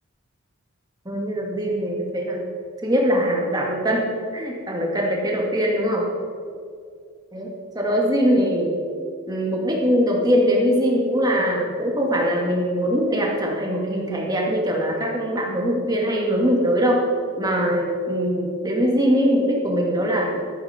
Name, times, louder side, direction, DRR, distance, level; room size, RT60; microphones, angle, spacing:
voice 1, 1.1-2.4 2.8-4.1 4.3-6.0 7.3-7.5 7.7-8.7 9.3-17.0 17.4-20.3, equal, 20° right, -1 dB, 2.3 m, -22 dB
13.5 x 13.5 x 4.5 m, 2.3 s
head